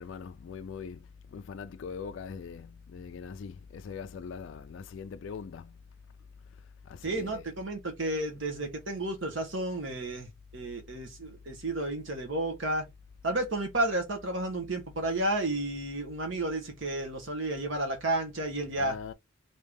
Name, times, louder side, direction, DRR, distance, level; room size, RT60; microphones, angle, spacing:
voice 1, 0.0-5.8 6.8-7.5 18.8-19.1, left 6 dB, 65° left, 0.3 m, -42 dB
voice 2, 7.0-12.8 13.2-19.0, right 1 dB, 65° right, 1.1 m, -32 dB
3.2 x 2.7 x 3.4 m
head